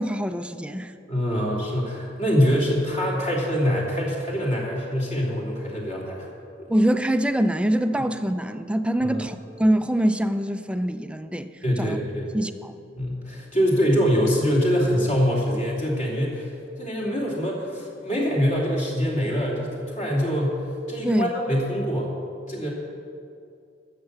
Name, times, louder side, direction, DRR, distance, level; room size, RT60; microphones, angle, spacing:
voice 1, 0.0-0.9 6.7-11.5 11.8-12.0 12.3-12.8 21.0-21.3, right 1 dB, 5° right, 9 dB, 0.4 m, -24 dB
voice 2, 1.1-6.3 9.0-9.2 11.6-12.3 13.0-16.5 16.8-20.6 20.9-22.1 22.5-22.7, equal, 40° left, -3 dB, 2.8 m, -24 dB
12.5 x 6.8 x 8.0 m, 2.4 s
head